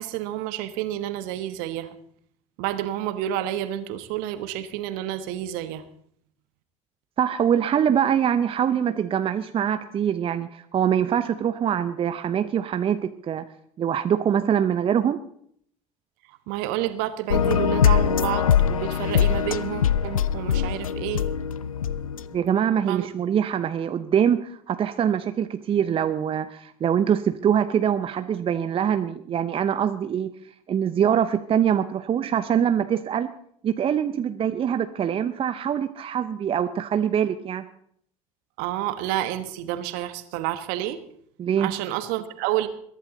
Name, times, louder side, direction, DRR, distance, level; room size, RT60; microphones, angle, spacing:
voice 1, 0.0-1.9 2.6-5.8 16.5-21.2 22.9-23.1 38.6-41.0 41.6-42.7, right 13 dB, 60° right, 12 dB, 1.3 m, -29 dB
voice 2, 7.2-13.4 13.8-15.2 22.3-30.3 30.7-33.3 33.6-37.6 41.4-41.7, right 8 dB, 35° right, 11 dB, 0.8 m, -24 dB
sound 1, 17.3-22.3, left 8 dB, 85° left, 0.5 m, -22 dB
22.0 x 11.5 x 4.0 m, 0.66 s
figure-of-eight pair, 70°, 17 cm